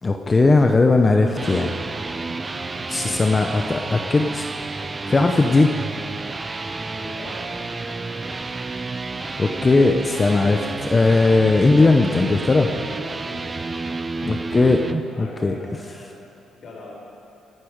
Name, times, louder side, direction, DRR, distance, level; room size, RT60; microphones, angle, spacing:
voice 1, 0.0-1.7 2.9-4.5 5.1-5.7 9.4-12.7 14.2-14.8 15.2-15.6, left 3 dB, 20° left, 4 dB, 0.7 m, -18 dB
sound 1, 1.2-15.0, right 3 dB, 20° right, 0.6 m, -30 dB
voice 2, 2.4-3.1 4.7-5.0 6.9-8.1 13.0-14.6 15.0-16.2 16.5-16.9, left 2 dB, 55° left, -4 dB, 4.9 m, -44 dB
25.5 x 11.0 x 5.1 m, 2.7 s
cardioid pair, 155°, 0 cm